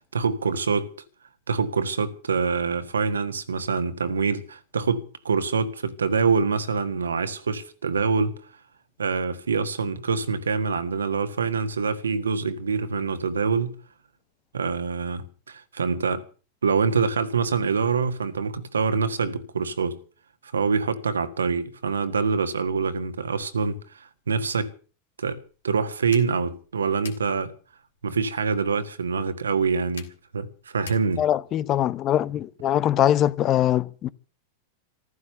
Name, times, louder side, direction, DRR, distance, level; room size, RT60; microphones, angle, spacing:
voice 1, 0.1-0.9 1.5-8.4 9.0-13.7 14.5-16.3 16.6-20.0 20.4-24.7 25.2-27.5 28.0-31.2, right 5 dB, 70° right, 1.6 m, -25 dB
sound 1, 25.4-31.5, left 7 dB, 65° left, 2.6 m, -49 dB
voice 2, 31.2-34.1, left 11 dB, 30° left, 0.8 m, -22 dB
15.0 x 14.0 x 6.7 m
figure-of-eight pair, 90°, 0 cm